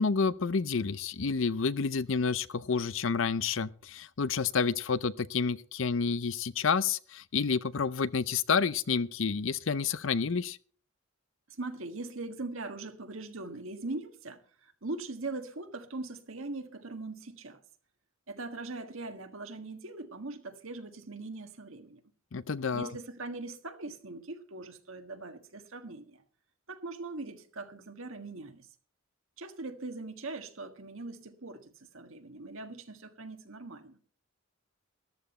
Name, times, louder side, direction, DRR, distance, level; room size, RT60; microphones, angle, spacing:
voice 1, 0.0-10.6 22.3-22.9, left 5 dB, 65° left, 0.6 m, -29 dB
voice 2, 11.5-17.6 18.3-22.0 22.7-26.2 26.7-28.7 29.4-34.0, right 2 dB, 75° right, 1.6 m, -41 dB
14.0 x 12.5 x 4.3 m
head